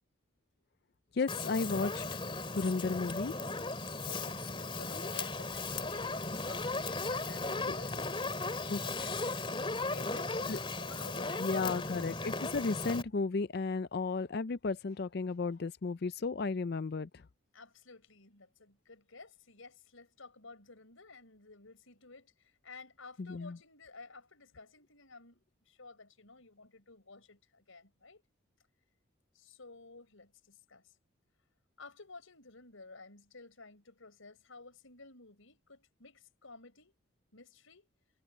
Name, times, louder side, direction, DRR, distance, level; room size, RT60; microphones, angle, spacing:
voice 1, 1.2-2.0 2.5-3.3 8.7-8.8 10.5-10.6 11.4-17.1 23.2-23.6, left 4 dB, 50° left, 0.4 m, -33 dB
Fire, 1.3-13.0, left 3 dB, 25° left, 3.0 m, -36 dB
voice 2, 4.0-8.5 8.8-9.4 9.8-12.2 17.5-25.4 25.7-28.2 29.3-30.8 31.8-36.9 37.3-37.9, left 3 dB, 80° left, 4.8 m, -53 dB
head